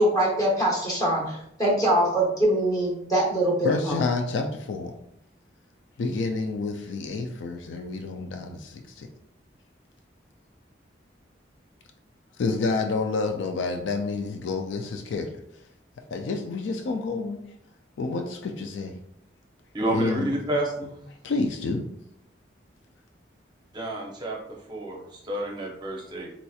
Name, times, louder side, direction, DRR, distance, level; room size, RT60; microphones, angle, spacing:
voice 1, 0.0-4.0, right 1 dB, 20° left, -3 dB, 0.8 m, -23 dB
voice 2, 3.6-4.9 6.0-9.1 12.4-15.3 16.1-17.4 18.0-18.9 19.9-20.3 21.2-21.9, left 3 dB, 80° left, 5 dB, 0.3 m, -29 dB
voice 3, 19.7-20.9 23.7-26.3, right 1 dB, 25° right, -1 dB, 0.6 m, -30 dB
4.1 x 2.8 x 2.3 m, 0.76 s
head